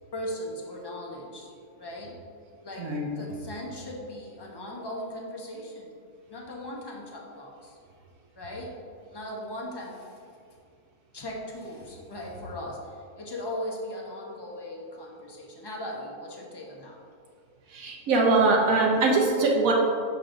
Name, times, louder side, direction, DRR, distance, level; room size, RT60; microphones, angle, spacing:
voice 1, 0.1-2.2 2.6-2.9 3.2-5.9 6.3-7.8 8.3-8.8 9.1-10.2 11.1-17.0, left 1 dB, 25° left, -2 dB, 0.6 m, -38 dB
voice 2, 17.7-19.7, right 3 dB, 70° right, -1 dB, 1.1 m, -22 dB
6.7 x 6.0 x 2.6 m, 2.4 s
omnidirectional pair, 1.6 m